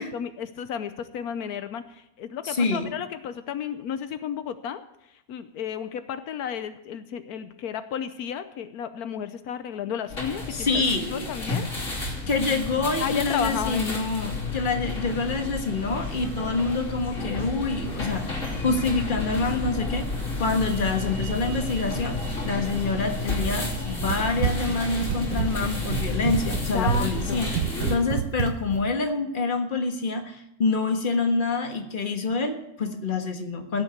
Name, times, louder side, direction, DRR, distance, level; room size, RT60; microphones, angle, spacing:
voice 1, 0.0-4.8 5.3-10.8 11.1-11.7 13.0-14.0 26.7-27.5, left 8 dB, 80° left, 11 dB, 1.2 m, -32 dB
voice 2, 2.4-2.9 10.5-11.5 12.3-27.5 27.9-33.8, left 3 dB, 35° left, 5 dB, 1.5 m, -27 dB
sound 1, 10.1-28.0, left 2 dB, 55° left, 3.4 m, -31 dB
Run, 23.6-28.9, right 9 dB, 85° right, 1.3 m, -29 dB
16.0 x 6.8 x 8.0 m, 0.83 s
omnidirectional pair, 1.6 m